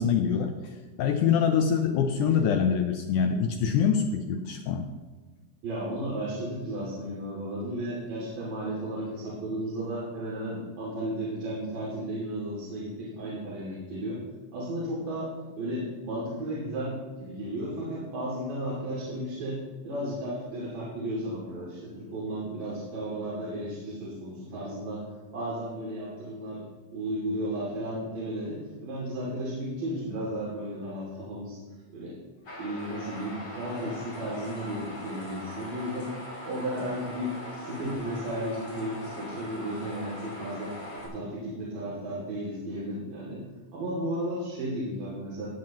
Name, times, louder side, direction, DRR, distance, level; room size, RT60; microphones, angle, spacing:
voice 1, 0.0-4.9, left 7 dB, 75° left, 5 dB, 1.9 m, -25 dB
voice 2, 5.6-14.2 14.5-25.1 25.3-26.7 26.9-31.6 31.9-32.2 32.6-36.2 36.4-40.7 41.0-43.4 43.7-45.5, right 1 dB, 80° right, -7 dB, 4.3 m, -34 dB
sound 1, 32.4-41.1, left 1 dB, 35° left, 4.3 m, -41 dB
17.5 x 9.1 x 3.0 m, 1.3 s
omnidirectional pair, 3.9 m